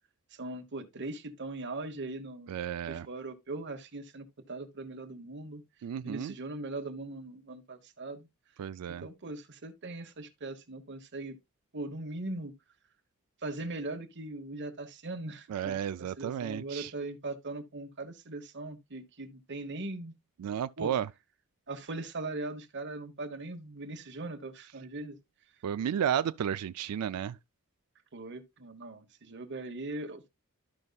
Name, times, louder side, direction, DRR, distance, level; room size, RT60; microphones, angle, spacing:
voice 1, 0.3-2.6 2.9-5.6 6.0-8.3 8.9-11.4 11.7-12.5 13.4-20.1 20.8-20.9 21.7-25.2 28.1-30.3, right 2 dB, 50° right, 1.1 m, -40 dB
voice 2, 2.5-3.1 5.8-6.3 8.6-9.0 15.5-16.9 20.4-21.1 25.6-27.4, right 9 dB, 90° right, 0.3 m, -32 dB
12.5 x 5.3 x 2.3 m
head